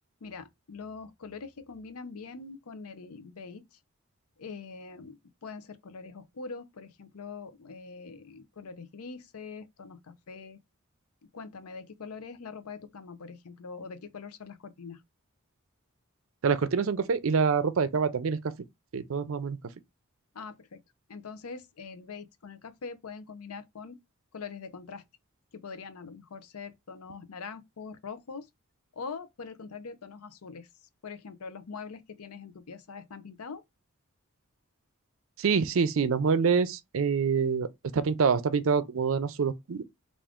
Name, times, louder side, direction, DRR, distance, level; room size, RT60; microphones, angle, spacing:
voice 1, 0.2-3.8 4.4-10.6 11.3-15.0 20.3-20.8 21.1-24.0 24.3-25.0 25.5-28.5 28.9-30.7 31.0-33.6, left 5 dB, 90° left, 0.6 m, -43 dB
voice 2, 16.4-18.5 18.9-19.6 35.4-37.7 37.9-39.8, right 5 dB, 65° right, 0.5 m, -26 dB
3.6 x 2.5 x 3.5 m
head